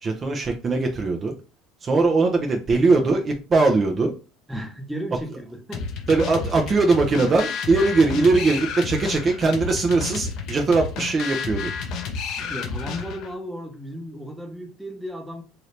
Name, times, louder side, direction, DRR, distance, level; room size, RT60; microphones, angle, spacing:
voice 1, 0.0-1.3 1.8-4.1 6.1-11.7, right 3 dB, 30° right, 0.6 m, -20 dB
voice 2, 4.5-5.8 12.4-15.4, equal, 5° right, 0.8 m, -34 dB
sound 1, 5.7-13.3, left 5 dB, 60° left, 0.7 m, -31 dB
2.7 x 2.7 x 3.2 m
supercardioid pair, 95°, 0 cm